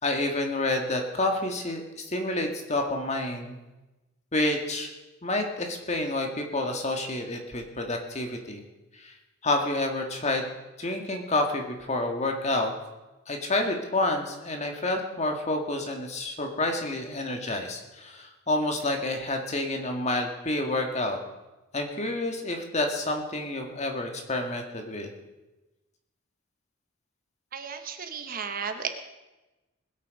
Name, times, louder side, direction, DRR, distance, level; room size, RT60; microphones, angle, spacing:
voice 1, 0.0-3.6 4.3-4.9 5.2-8.6 8.9-9.1 9.4-10.5 10.8-12.7 13.3-21.2 21.7-25.1, left 2 dB, 35° left, 3 dB, 1.8 m, -29 dB
voice 2, 27.5-28.9, right 6 dB, 45° right, 7 dB, 1.1 m, -34 dB
20.0 x 8.5 x 5.2 m, 1.1 s
head